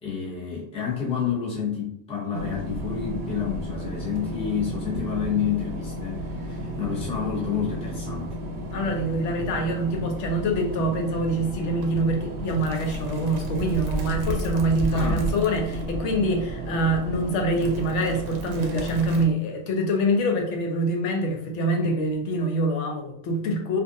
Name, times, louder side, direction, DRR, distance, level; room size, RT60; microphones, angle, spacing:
voice 1, 0.0-8.3 14.9-15.3, left 7 dB, 10° left, -4 dB, 0.4 m, -29 dB
sound 1, 2.3-19.2, right 1 dB, 90° right, 0.9 m, -32 dB
voice 2, 8.7-23.8, right 1 dB, 80° left, 2 dB, 0.9 m, -25 dB
2.5 x 2.4 x 2.5 m, 0.67 s
omnidirectional pair, 1.2 m